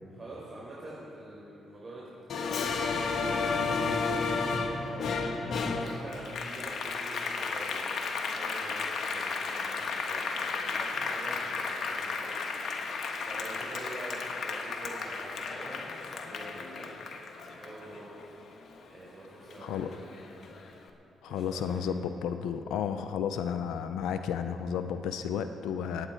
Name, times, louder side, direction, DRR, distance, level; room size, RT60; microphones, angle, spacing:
voice 1, 0.1-8.0 8.3-12.4 13.2-16.9 17.5-18.1 18.9-20.4 21.2-21.8, right 1 dB, 40° right, -7 dB, 4.0 m, -46 dB
Applause, 2.3-19.1 19.5-20.7, left 4 dB, 65° left, 1.2 m, -33 dB
voice 2, 21.2-26.1, left 7 dB, 80° left, 9 dB, 0.5 m, -32 dB
22.5 x 9.1 x 4.5 m, 2.9 s
supercardioid pair, 55°, 0 cm